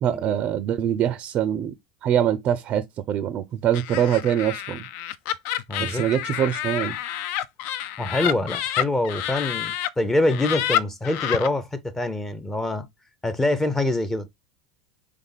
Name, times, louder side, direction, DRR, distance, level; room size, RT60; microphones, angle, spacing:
voice 1, 0.0-1.7 2.0-4.8 5.8-7.0, right 10 dB, 40° right, 0.5 m, -24 dB
Laughter, 3.7-9.9 10.3-11.5, left 11 dB, 55° left, 0.4 m, -28 dB
voice 2, 5.7-6.0 8.0-12.9 13.2-14.3, left 2 dB, 15° left, 0.6 m, -25 dB
3.6 x 3.4 x 4.0 m
hypercardioid pair, 90°, 3 cm